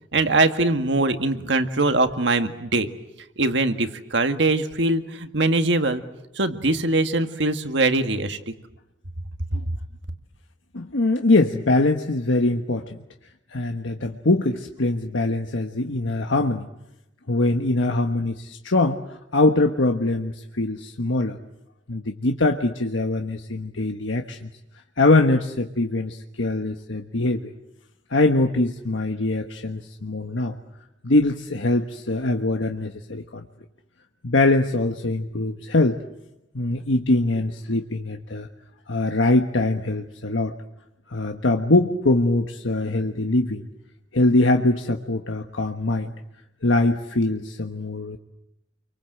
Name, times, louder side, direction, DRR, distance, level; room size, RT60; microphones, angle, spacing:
voice 1, 0.1-2.9 3.4-6.0 6.3-8.5, right 2 dB, 65° right, 7 dB, 1.9 m, -22 dB
voice 2, 10.7-13.0 13.5-16.7 17.3-19.0 19.3-21.4 21.9-24.5 25.0-27.5 28.1-30.6 31.0-33.4 34.2-36.0 36.5-38.5 38.9-40.5 41.1-43.7 44.1-46.1 46.6-48.2, left 2 dB, 85° left, 4 dB, 1.4 m, -22 dB
29.5 x 24.5 x 7.9 m, 0.88 s
head